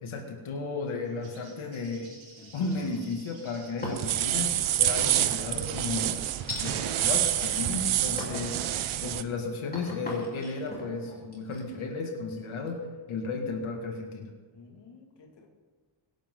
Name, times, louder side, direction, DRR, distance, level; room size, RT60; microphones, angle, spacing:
voice 1, 0.0-2.1 2.5-6.3 6.6-8.6 9.0-14.3, left 3 dB, 85° left, 1 dB, 2.4 m, -34 dB
Bird, 1.0-7.9, right 2 dB, 50° right, 6.3 m, -54 dB
sound 1, 2.3-3.1 3.6-4.2 4.7-5.3 6.5-6.7 7.3-7.8 8.2-8.5 9.0-12.7, left 1 dB, 20° left, 3.9 m, -41 dB
sound 2, 4.0-9.2, right 12 dB, 85° right, 0.9 m, -27 dB
voice 2, 8.2-8.5 9.0-9.3 14.5-15.5, left 4 dB, 60° left, 1 dB, 2.4 m, -50 dB
23.5 x 11.5 x 3.9 m, 1.4 s
wide cardioid pair, 155°, 47 cm